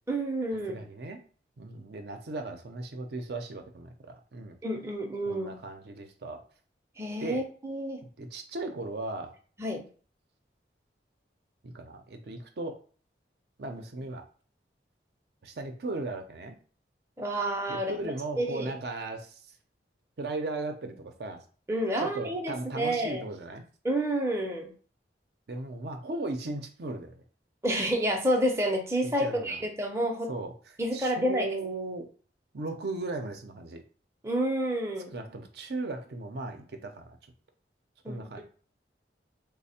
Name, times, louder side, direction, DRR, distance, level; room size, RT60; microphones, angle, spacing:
voice 1, 0.1-0.8 4.6-5.5 7.0-8.0 9.6-9.8 17.2-18.1 18.4-18.7 21.7-23.2 23.8-24.7 27.6-30.3 30.8-31.5 34.2-35.1 38.0-38.3, right 1 dB, 15° right, 1 dB, 0.5 m, -29 dB
voice 2, 0.7-1.2 1.6-4.6 5.3-6.4 7.2-7.4 8.2-9.3 11.6-12.8 13.6-14.2 15.4-16.6 17.7-19.4 20.2-21.4 22.0-23.6 25.5-27.2 29.0-29.6 30.3-30.5 30.9-32.1 32.5-33.8 35.1-37.2 38.1-38.4, right 2 dB, 65° right, 5 dB, 0.5 m, -37 dB
3.2 x 2.0 x 4.2 m, 0.40 s
head